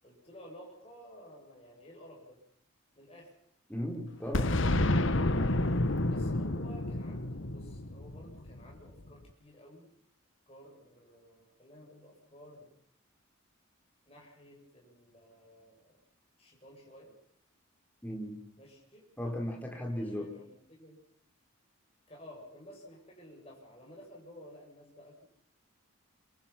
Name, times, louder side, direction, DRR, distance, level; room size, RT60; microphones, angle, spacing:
voice 1, 0.0-2.4 2.9-3.3 6.1-9.9 10.5-12.7 14.1-15.9 16.4-17.1 18.6-19.1 19.9-21.0 22.1-25.2, equal, 30° left, -1 dB, 7.9 m, -53 dB
voice 2, 3.7-4.6 18.0-18.4 19.2-20.4, equal, 10° left, 1 dB, 4.4 m, -36 dB
Boom, 4.3-9.0, left 1 dB, 60° left, 1.3 m, -29 dB
26.0 x 25.0 x 6.1 m, 0.64 s
head